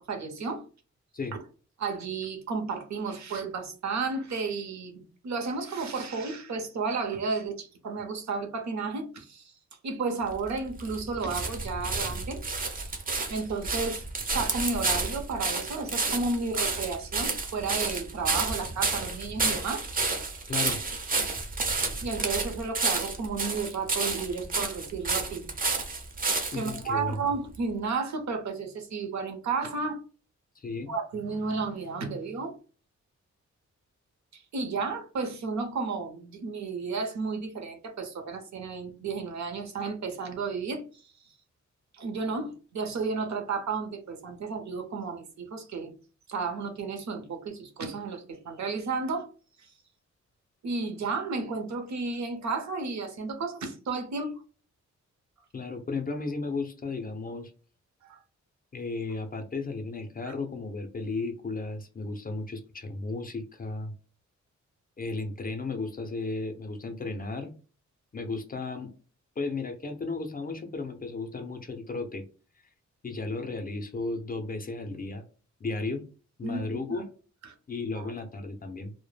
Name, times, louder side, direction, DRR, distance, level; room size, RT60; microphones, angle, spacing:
voice 1, 0.1-0.6 1.8-9.5 9.8-12.4 12.8-12.9 13.2-19.9 22.0-25.5 26.5-30.0 30.9-32.5 34.3-40.8 41.9-45.9 46.3-49.3 49.6-49.7 50.6-54.4 58.0-58.2 60.3-60.4 76.4-77.0 77.4-77.5 78.0-78.1, right 4 dB, 70° right, 0.7 m, -32 dB
sound 1, 10.3-26.8 27.5-27.6, right 3 dB, 30° right, 0.4 m, -30 dB
voice 2, 20.5-20.8 26.5-27.2 30.6-30.9 55.5-57.5 58.7-63.9 65.0-67.5 68.1-68.9 69.4-72.2 73.0-75.2 75.6-76.0 76.4-77.0 77.7-78.9, left 3 dB, 30° left, 0.4 m, -34 dB
2.1 x 2.0 x 3.1 m
wide cardioid pair, 145°, 29 cm